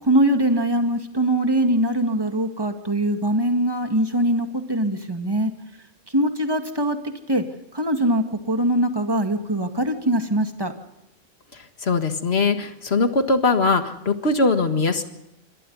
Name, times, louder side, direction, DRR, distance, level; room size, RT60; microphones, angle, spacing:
voice 1, 0.0-5.5 6.1-7.4 7.7-10.7, right 1 dB, 20° right, 6 dB, 2.1 m, -22 dB
voice 2, 11.5-15.0, left 3 dB, 55° left, 7 dB, 2.0 m, -21 dB
27.0 x 25.0 x 4.1 m, 0.85 s
omnidirectional pair, 1.3 m